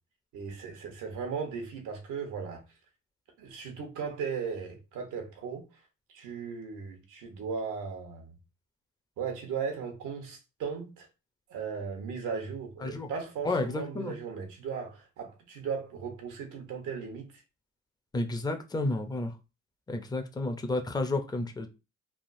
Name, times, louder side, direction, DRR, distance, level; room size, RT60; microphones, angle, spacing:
voice 1, 0.3-2.6 3.4-5.7 6.1-8.4 9.2-11.1 11.5-17.3, right 6 dB, 90° right, 1.0 m, -37 dB
voice 2, 13.4-14.1 18.1-19.3 19.9-21.7, left 2 dB, 15° left, 0.5 m, -31 dB
3.3 x 2.3 x 2.6 m
cardioid pair, 90°, 30 cm